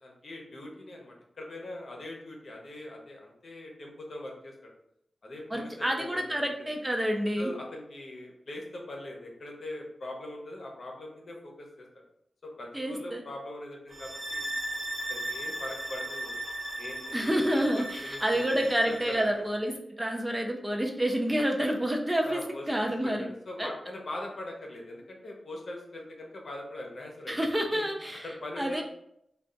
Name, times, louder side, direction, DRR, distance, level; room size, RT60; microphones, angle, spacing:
voice 1, 0.0-4.7 5.2-6.3 7.4-11.9 12.4-14.5 15.1-16.4 16.8-19.4 22.2-27.4 27.7-27.8 28.2-28.8, left 1 dB, 65° left, 0 dB, 0.8 m, -41 dB
voice 2, 5.5-7.5 12.7-13.2 17.1-23.3 23.6-23.7 27.3-28.3 28.6-28.8, equal, 10° right, 2 dB, 0.4 m, -28 dB
sound 1, 13.9-19.3, right 1 dB, 35° right, 0.8 m, -37 dB
3.3 x 2.3 x 3.9 m, 0.77 s
wide cardioid pair, 115°, 0 cm